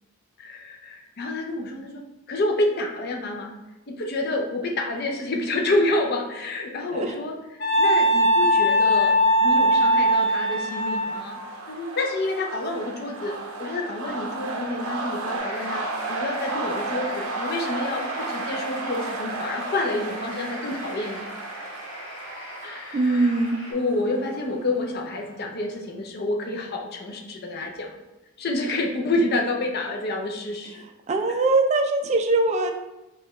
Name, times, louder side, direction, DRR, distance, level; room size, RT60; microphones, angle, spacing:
voice 1, 0.4-2.0 2.3-3.5 3.9-7.4 7.8-9.1 9.4-11.4 11.7-21.5 22.6-23.3 23.7-27.9 28.4-30.9 31.3-31.4, left 2 dB, 45° left, 2 dB, 0.5 m, -28 dB
Wind instrument woodwind instrument, 7.6-11.2, equal, 70° left, 1.3 m, -20 dB
sound 1, 8.8-25.5, right 3 dB, 90° right, 0.5 m, -34 dB
sound 2, 15.4-23.7, equal, 25° left, 1.3 m, -41 dB
voice 2, 22.9-23.6 31.1-32.7, right 2 dB, 30° right, 4 dB, 0.3 m, -21 dB
4.8 x 2.3 x 3.0 m, 1.0 s
head